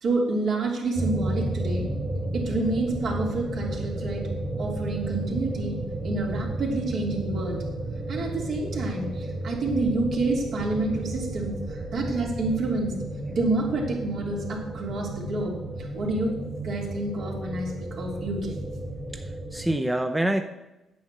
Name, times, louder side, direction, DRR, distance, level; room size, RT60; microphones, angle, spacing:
voice 1, 0.0-1.9 2.3-4.3 4.6-5.8 6.0-7.6 8.1-12.9 13.3-18.6, right 2 dB, 65° right, -1 dB, 3.0 m, -28 dB
sound 1, 0.9-19.8, right 1 dB, 30° right, 1.8 m, -32 dB
voice 2, 19.1-20.4, right 1 dB, 10° right, 6 dB, 0.7 m, -27 dB
9.3 x 7.9 x 6.7 m, 0.98 s
cardioid pair, 90°, 0 cm